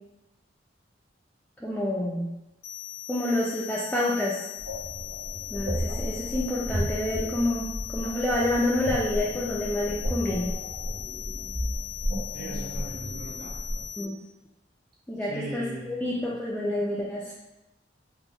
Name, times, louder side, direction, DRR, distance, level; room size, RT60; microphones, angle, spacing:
voice 1, 1.6-2.3 3.1-4.4 5.5-10.5 14.0-14.2 15.1-17.3, left 1 dB, 10° left, -6 dB, 0.4 m, -28 dB
sound 1, 2.6-14.1, left 15 dB, 60° left, 0.6 m, -39 dB
sound 2, 4.6-13.8, equal, 80° right, 0.9 m, -33 dB
voice 2, 12.3-13.6 15.2-16.3, right 1 dB, 55° right, -7 dB, 1.5 m, -39 dB
3.8 x 2.0 x 3.6 m, 0.98 s
head